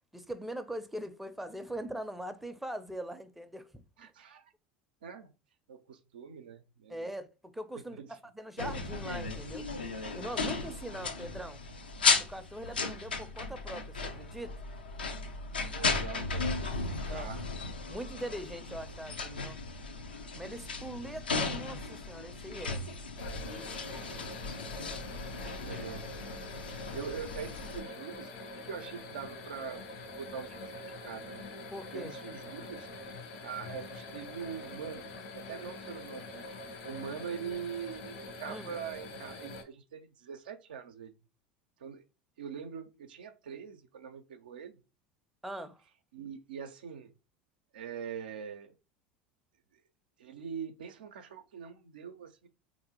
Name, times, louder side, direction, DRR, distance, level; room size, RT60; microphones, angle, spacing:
voice 1, 0.1-3.7 6.9-7.3 7.5-9.7 10.1-11.6 12.3-14.6 17.1-17.3 17.9-19.6 20.3-22.8 23.6-23.7 31.7-32.2 38.5-38.7 45.4-45.8, right 1 dB, 5° right, 0.5 m, -41 dB
voice 2, 4.0-4.5 5.0-5.3 5.7-7.1 7.7-8.1 10.6-10.8 15.7-16.6 17.0-17.5 21.0-21.1 24.1-24.4 25.4-26.4 26.7-28.3 28.7-29.8 30.2-31.4 31.9-32.9 33.4-36.5 36.8-41.1 41.8-42.0 42.4-44.8 46.1-47.1 47.7-48.7 50.2-52.5, right 7 dB, 80° right, 0.5 m, -43 dB
sound 1, 8.6-27.8, left 4 dB, 90° left, 0.5 m, -35 dB
sound 2, 23.2-39.6, left 2 dB, 70° left, 0.9 m, -45 dB
3.6 x 2.6 x 2.8 m
hypercardioid pair, 80°, 5 cm